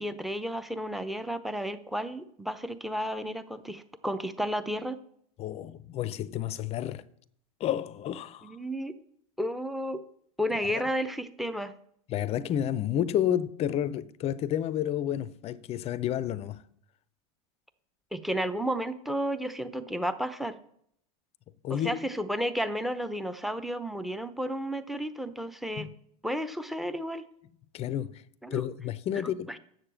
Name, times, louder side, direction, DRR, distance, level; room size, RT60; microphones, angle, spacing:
voice 1, 0.0-5.0 8.4-9.0 9.4-10.0 10.4-11.7 18.1-20.6 21.7-25.9 26.2-27.2 28.4-28.7 29.2-29.6, equal, ahead, 0.7 m, -32 dB
voice 2, 5.4-7.0 7.6-8.6 10.6-10.7 12.1-16.6 21.6-22.0 25.8-25.9 27.7-28.2 28.5-29.6, left 10 dB, 35° left, 0.6 m, -30 dB
7.7 x 6.7 x 7.5 m
hypercardioid pair, 95°, 19 cm